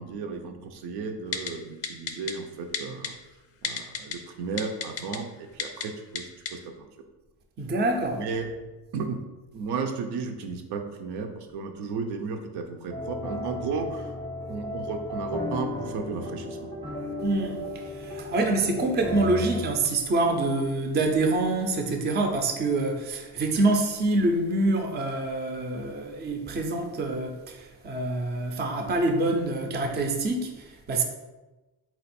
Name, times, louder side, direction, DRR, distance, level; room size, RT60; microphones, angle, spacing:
voice 1, 0.0-3.1 3.6-6.9 8.1-9.2 9.5-14.1 14.4-16.6, right 4 dB, 75° right, 0.6 m, -34 dB
Typing, 1.3-1.5 1.8-2.3 2.7-3.1 3.6-4.2 4.6-5.2 5.6-5.9 6.2-6.3 6.5-6.6, left 7 dB, 40° left, 0.4 m, -30 dB
voice 2, 7.6-8.2 17.2-31.0, right 2 dB, 25° right, 0.5 m, -26 dB
sound 1, 12.9-19.7, left 1 dB, 10° left, 0.7 m, -34 dB
4.3 x 2.4 x 4.1 m
cardioid pair, 135°, 40 cm